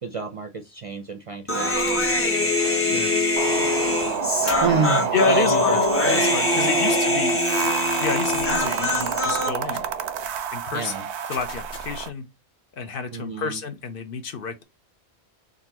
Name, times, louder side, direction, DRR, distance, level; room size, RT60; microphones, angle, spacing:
voice 1, 0.0-3.2 4.6-5.8 6.5-6.9 10.7-11.0 13.1-13.6, right 4 dB, 45° right, 0.5 m, -30 dB
Human voice, 1.5-9.5, left 2 dB, 15° left, 0.5 m, -23 dB
sound 1, 1.7-2.3 4.4-4.8 5.8-5.9 8.3-8.7 9.7-10.0 11.3-12.1, left 1 dB, 45° left, 1.3 m, -39 dB
voice 2, 2.9-3.2 5.1-7.7 8.0-9.9 10.5-10.9 11.3-12.3 12.8-14.6, left 5 dB, 60° left, 0.8 m, -29 dB
sound 2, 3.4-12.1, right 7 dB, 85° right, 0.8 m, -28 dB
3.8 x 2.5 x 2.8 m
omnidirectional pair, 1.1 m